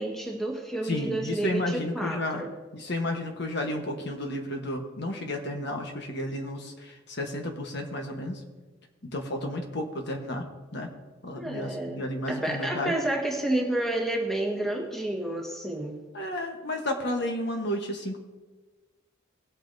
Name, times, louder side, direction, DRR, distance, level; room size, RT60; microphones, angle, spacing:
voice 1, 0.0-2.5 11.3-12.0 12.3-16.0, right 1 dB, ahead, 0 dB, 1.5 m, -30 dB
voice 2, 0.8-2.4 2.7-8.4 9.0-10.4 10.7-10.9 11.2-12.9 16.1-18.2, left 1 dB, 60° left, 3 dB, 1.2 m, -32 dB
18.5 x 8.4 x 2.7 m, 1.3 s
head